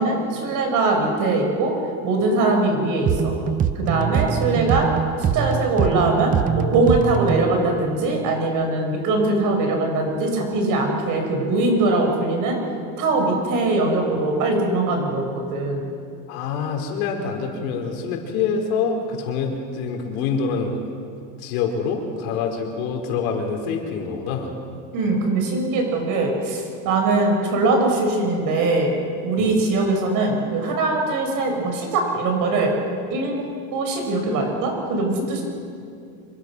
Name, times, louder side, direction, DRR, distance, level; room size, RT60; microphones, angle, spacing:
voice 1, 0.0-1.7 2.0-3.3 3.7-4.9 5.3-12.6 13.0-15.8 24.9-28.9 29.2-32.7 33.1-33.4 33.7-35.4, right 2 dB, 45° right, 2 dB, 6.0 m, -21 dB
sound 1, 3.1-7.6, right 8 dB, 20° right, 0.6 m, -23 dB
voice 2, 16.3-20.9 21.4-24.5 29.4-29.5, left 5 dB, 75° left, 2 dB, 4.6 m, -26 dB
26.5 x 23.5 x 6.2 m, 2.5 s
cardioid pair, 160°, 43 cm